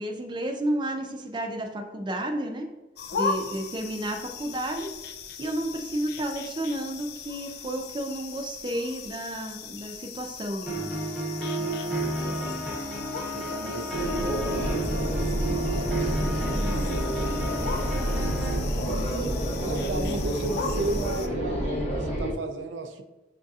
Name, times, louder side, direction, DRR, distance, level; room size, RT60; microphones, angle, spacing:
voice 1, 0.0-2.7 3.1-4.9 5.4-10.8 18.9-19.3, right 1 dB, 25° right, 3 dB, 0.5 m, -32 dB
sound 1, 3.0-21.3, left 5 dB, 60° left, 0.4 m, -38 dB
sound 2, 10.7-18.7, right 1 dB, ahead, 0.8 m, -32 dB
voice 2, 11.6-12.6 13.2-17.1 18.7-19.1 19.6-23.0, right 2 dB, 85° right, 6 dB, 0.4 m, -36 dB
sound 3, 13.9-22.3, equal, 35° left, 0.8 m, -28 dB
7.3 x 2.7 x 2.4 m, 1.1 s
head